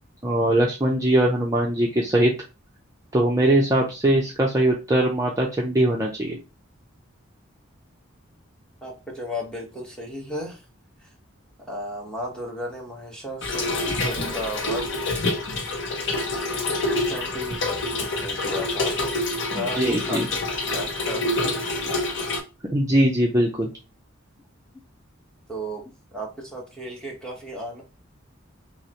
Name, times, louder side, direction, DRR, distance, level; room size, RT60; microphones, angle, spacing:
voice 1, 0.2-2.3 3.1-6.4 19.5-20.3 22.7-23.7, right 1 dB, 15° right, -2 dB, 0.5 m, -21 dB
voice 2, 8.8-10.6 11.0-11.1 11.6-15.3 17.1-22.0 25.5-27.8, equal, 5° left, -1 dB, 1.1 m, -35 dB
Trickle dribble / Fill (with liquid), 13.4-22.4, left 2 dB, 60° left, 0.7 m, -27 dB
5.6 x 2.1 x 2.9 m, 0.28 s
head